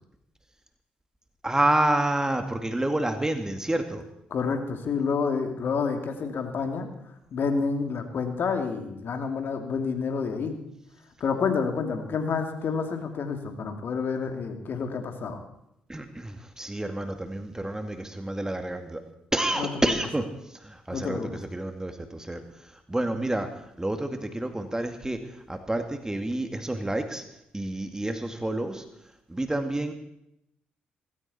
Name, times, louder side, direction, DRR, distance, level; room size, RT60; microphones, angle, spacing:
voice 1, 1.4-4.1 15.9-19.0 19.3-27.2 27.5-28.9 29.3-29.9, right 1 dB, 15° right, 6 dB, 2.2 m, -29 dB
voice 2, 4.3-6.9 7.3-10.6 11.2-15.4 19.6-19.7 20.9-21.3, left 5 dB, 55° left, 5 dB, 2.7 m, -29 dB
19.0 x 16.5 x 4.4 m, 0.80 s
hypercardioid pair, 45°, 4 cm